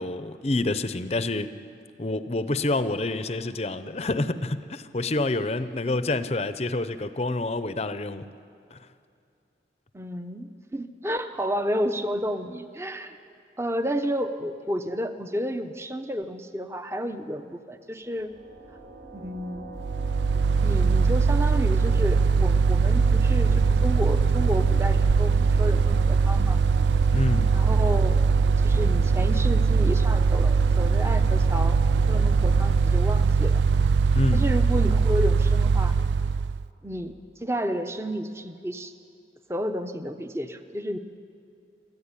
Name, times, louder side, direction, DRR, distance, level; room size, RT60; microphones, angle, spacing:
voice 1, 0.0-1.5 2.0-8.3 8.7-8.8 27.1-27.6 34.1-34.4, left 2 dB, 35° left, 12 dB, 0.7 m, -27 dB
voice 2, 9.9-13.2 13.6-18.3 19.1-19.7 20.6-26.6 27.5-28.2 28.6-31.8 32.1-33.6 34.3-36.0 36.8-38.9 39.5-41.0, equal, 15° right, 8 dB, 0.9 m, -31 dB
sound 1, 18.1-33.9, right 3 dB, 60° right, 2.0 m, -40 dB
Mechanical fan, 19.8-36.7, right 5 dB, 85° right, 0.5 m, -21 dB
25.5 x 14.0 x 9.8 m, 2.5 s
head